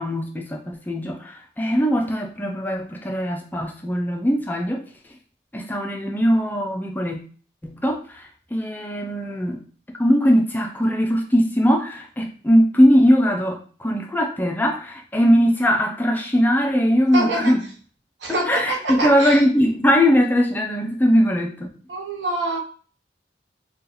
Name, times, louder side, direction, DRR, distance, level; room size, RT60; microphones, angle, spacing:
voice 1, 0.0-4.9 5.5-7.2 7.6-9.6 10.0-17.6 18.3-21.7, equal, 10° left, 2 dB, 0.3 m, -20 dB
voice 2, 17.1-17.6 18.2-19.4 21.9-22.6, right 2 dB, 75° right, 0 dB, 0.8 m, -25 dB
2.8 x 2.2 x 3.9 m, 0.42 s
head